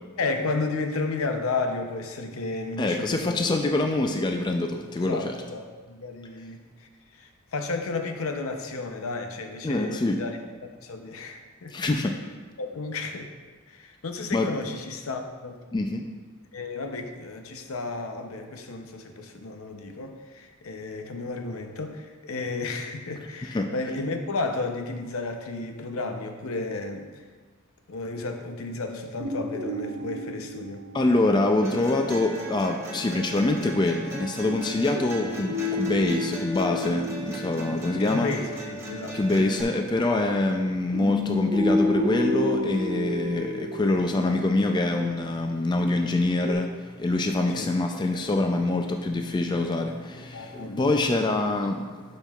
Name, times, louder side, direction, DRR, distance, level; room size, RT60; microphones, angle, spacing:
voice 1, 0.2-3.4 5.0-6.6 7.2-10.4 10.8-11.7 12.6-13.3 13.7-15.6 16.5-27.1 27.9-30.8 35.2-35.3 38.1-39.2 47.5-47.7 48.6-48.7 50.3-51.0 51.3-51.5, left 3 dB, 80° left, 5 dB, 0.7 m, -33 dB
voice 2, 2.8-5.3 9.6-10.2 11.7-12.1 14.3-14.5 15.7-16.1 23.5-23.7 30.9-38.3 39.1-51.8, left 2 dB, 20° left, 4 dB, 0.3 m, -25 dB
sound 1, 29.2-31.8 34.5-38.2 40.9-44.7 46.4-46.5, left 2 dB, 55° right, 1.1 m, -30 dB
sound 2, 31.6-39.6, right 1 dB, 15° right, 1.0 m, -37 dB
11.5 x 5.3 x 2.4 m, 1.4 s
head